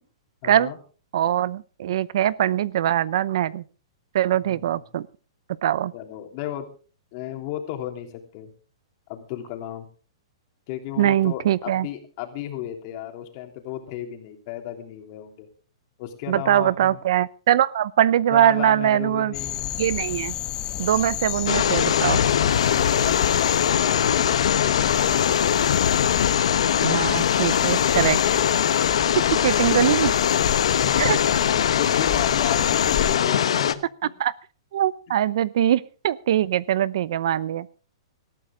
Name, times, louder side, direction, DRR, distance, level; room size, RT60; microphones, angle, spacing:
voice 1, 0.4-0.8 4.4-4.8 5.9-6.7 7.1-8.5 9.1-9.9 10.7-15.5 16.0-17.0 18.3-19.8 22.6-25.7 30.8-31.2 31.8-34.1, left 12 dB, 40° left, 4 dB, 3.2 m, -35 dB
voice 2, 1.1-3.6 4.1-5.1 5.6-5.9 11.0-11.9 16.3-19.3 19.8-20.3 20.8-22.2 26.8-28.2 29.4-30.1 31.0-31.2 34.2-34.3 34.7-37.7, right 11 dB, 60° right, 20 dB, 0.6 m, -22 dB
sound 1, 19.3-33.2, left 12 dB, 25° left, 1.3 m, -31 dB
sound 2, 21.5-33.7, left 9 dB, 75° left, 1.1 m, -21 dB
19.5 x 13.5 x 3.7 m, 0.38 s
hypercardioid pair, 155°, 3 cm